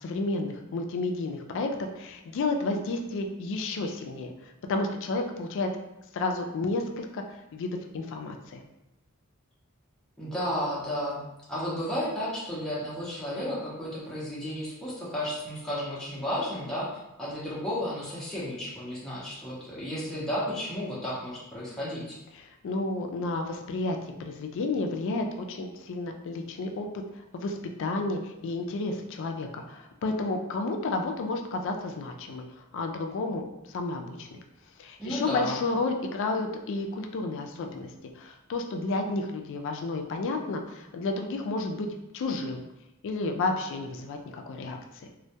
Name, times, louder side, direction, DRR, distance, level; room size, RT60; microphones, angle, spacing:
voice 1, 0.0-5.7 6.1-7.2 7.5-8.6 22.6-26.9 27.3-32.4 32.7-34.4 34.8-37.9 38.2-41.9 42.1-42.6 43.0-45.1, left 3 dB, 60° left, 4 dB, 0.3 m, -31 dB
voice 2, 10.2-11.2 11.5-16.9 17.2-22.2 35.0-35.6, equal, 5° left, -9 dB, 0.5 m, -33 dB
2.1 x 2.1 x 2.7 m, 0.92 s
head